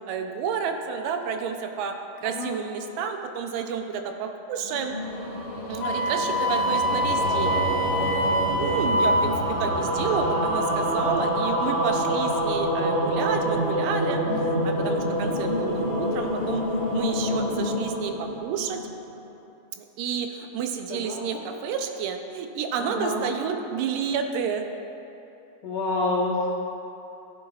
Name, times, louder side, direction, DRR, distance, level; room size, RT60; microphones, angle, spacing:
voice 1, 0.1-1.9 2.2-4.9 5.7-7.6 8.5-14.2 14.5-16.6 16.9-18.8 19.8-24.7, right 7 dB, 80° right, 5 dB, 2.3 m, -30 dB
voice 2, 2.2-2.5 14.3-14.5 20.9-21.3 22.8-23.2 25.6-26.5, left 2 dB, 65° left, -4 dB, 1.9 m, -28 dB
sound 1, 4.6-19.1, equal, 40° left, 0.9 m, -27 dB
Wind instrument woodwind instrument, 5.8-9.4, right 1 dB, 80° left, 1.6 m, -25 dB
15.0 x 8.0 x 2.4 m, 2.8 s
omnidirectional pair, 3.9 m